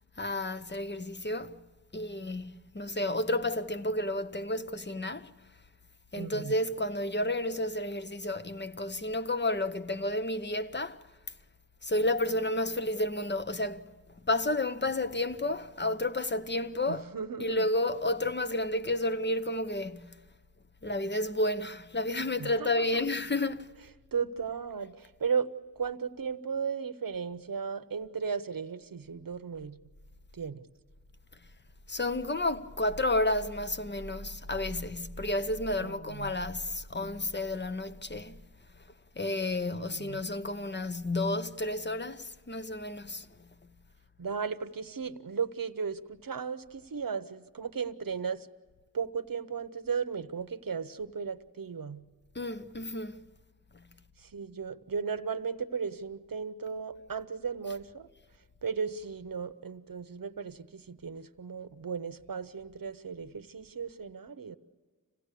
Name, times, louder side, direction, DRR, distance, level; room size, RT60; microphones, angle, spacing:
voice 1, 0.2-1.6 1.9-5.3 6.1-11.1 11.8-13.9 14.2-17.0 17.4-20.2 20.8-23.7 31.9-38.4 39.2-43.5 52.3-53.2 53.7-53.9 57.7-57.8, left 1 dB, 30° left, 0.8 m, -31 dB
voice 2, 6.2-6.5 16.9-17.6 22.4-22.9 24.1-25.5 25.8-29.8 30.3-30.6 35.8-36.4 39.7-40.2 44.2-48.5 48.9-52.0 54.2-58.1 58.6-64.6, right 6 dB, 75° right, 0.9 m, -35 dB
26.0 x 16.5 x 8.3 m
wide cardioid pair, 60°, 34 cm